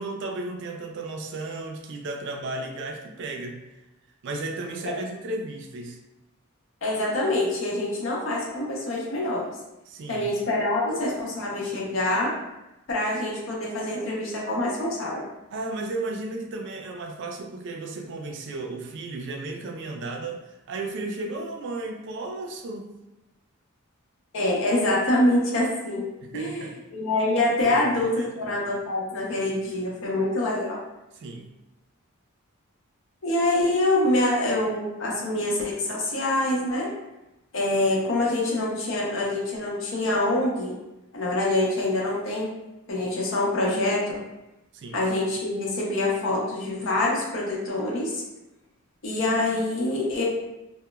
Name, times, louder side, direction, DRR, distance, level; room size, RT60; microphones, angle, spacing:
voice 1, 0.0-3.6 4.2-6.0 9.9-10.3 15.5-22.9 26.2-26.8 27.6-27.8 28.2-28.3 31.1-31.5 44.7-45.0, right 2 dB, 55° right, 3 dB, 0.3 m, -34 dB
voice 2, 6.8-9.4 10.1-12.3 12.9-15.2 24.3-26.0 26.3-30.8 33.2-36.9 37.5-40.7 41.1-42.5 42.9-44.2 44.9-48.2 49.0-50.2, left 1 dB, 65° left, -3 dB, 0.7 m, -25 dB
2.9 x 2.0 x 2.2 m, 0.96 s
head